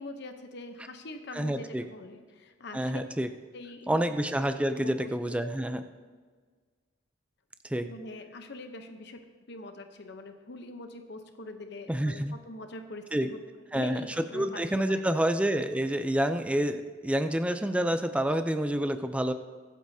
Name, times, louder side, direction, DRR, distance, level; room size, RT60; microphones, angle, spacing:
voice 1, 0.0-3.0 3.5-4.0 4.8-5.1 7.8-9.2 9.5-13.4 13.7-14.5 14.9-15.2, left 2 dB, 60° left, 6 dB, 0.8 m, -43 dB
voice 2, 1.3-1.9 2.7-3.3 3.9-5.8 7.6-7.9 11.9-12.3 13.1-13.3 13.7-19.3, right 1 dB, 5° right, 8 dB, 0.5 m, -28 dB
23.0 x 8.3 x 2.8 m, 1.5 s
head